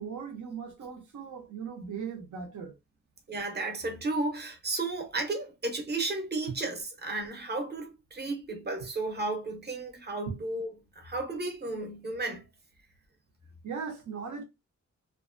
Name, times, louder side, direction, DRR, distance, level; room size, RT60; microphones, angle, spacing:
voice 1, 0.0-2.7 13.6-14.4, right 6 dB, 80° right, 0.8 m, -38 dB
voice 2, 3.3-12.5, right 2 dB, 35° right, 0.7 m, -33 dB
2.5 x 2.2 x 2.5 m
wide cardioid pair, 115°, 29 cm